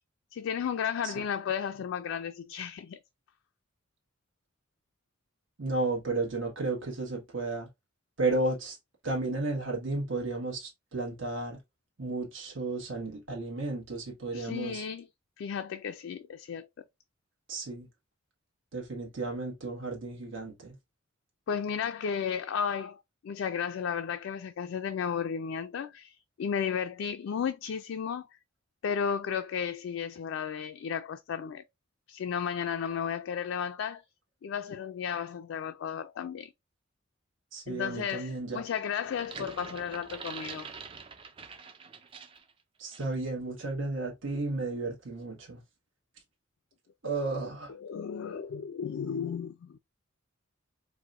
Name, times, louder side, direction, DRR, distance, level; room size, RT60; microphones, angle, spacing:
voice 1, 0.3-3.0 14.3-15.1 15.4-16.9 21.5-28.3 28.8-31.6 32.1-34.0 34.4-36.5 37.7-40.7 47.7-49.8, left 7 dB, 70° left, 0.3 m, -34 dB
voice 2, 5.6-7.7 8.2-8.8 9.0-11.6 12.0-14.9 17.5-17.9 18.7-20.8 37.5-38.6 42.8-45.6 47.0-47.7, right 2 dB, 70° right, 1.2 m, -33 dB
sound 1, 39.0-42.5 42.9-43.1, right 5 dB, 25° right, 0.3 m, -45 dB
4.7 x 2.1 x 2.4 m
head